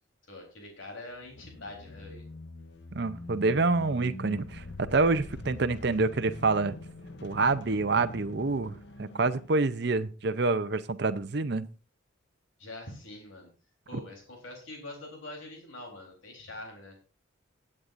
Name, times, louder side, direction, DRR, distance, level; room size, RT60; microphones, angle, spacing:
voice 1, 0.3-2.2 12.6-13.5 13.9-17.0, left 2 dB, 85° left, 1 dB, 3.7 m, -44 dB
sound 1, 1.1-9.9, left 2 dB, 60° left, 0.9 m, -44 dB
voice 2, 2.9-6.8 7.2-11.6, right 3 dB, 55° right, 12 dB, 0.6 m, -27 dB
19.0 x 8.7 x 2.6 m, 0.34 s
head